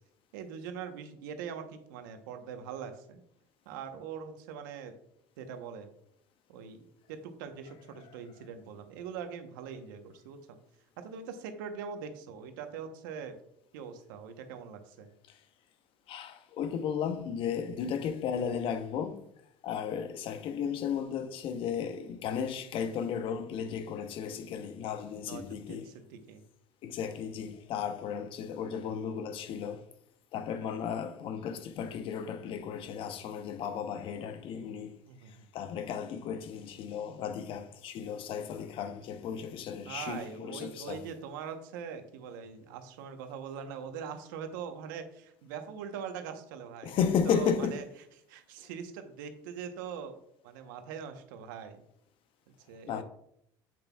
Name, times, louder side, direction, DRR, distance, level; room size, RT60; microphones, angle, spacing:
voice 1, 0.3-3.2 3.7-4.9 5.4-5.9 6.5-6.8 7.1-10.6 11.0-13.4 13.7-15.1 25.3-26.4 35.1-35.5 39.8-47.8 48.3-50.2 50.4-51.8 52.5-53.0, right 7 dB, 85° right, 0.9 m, -42 dB
voice 2, 16.1-19.2 19.6-25.8 26.8-29.8 30.3-34.9 35.5-41.0 46.8-47.8 52.9-53.0, left 7 dB, 55° left, 0.8 m, -34 dB
7.8 x 6.9 x 2.3 m
supercardioid pair, 95°, 11 cm